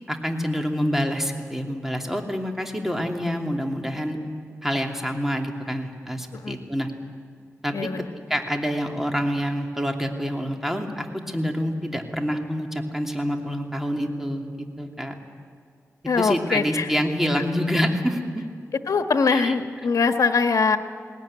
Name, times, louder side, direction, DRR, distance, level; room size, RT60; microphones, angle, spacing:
voice 1, 0.1-4.2 4.6-6.9 7.6-7.7 8.3-15.1 16.2-18.4 19.3-19.5, equal, 5° right, 3 dB, 2.8 m, -27 dB
voice 2, 7.7-8.1 16.0-16.9 18.9-20.8, left 5 dB, 80° left, 7 dB, 1.3 m, -22 dB
21.0 x 18.5 x 10.0 m, 2.2 s
cardioid pair, 60°, 6 cm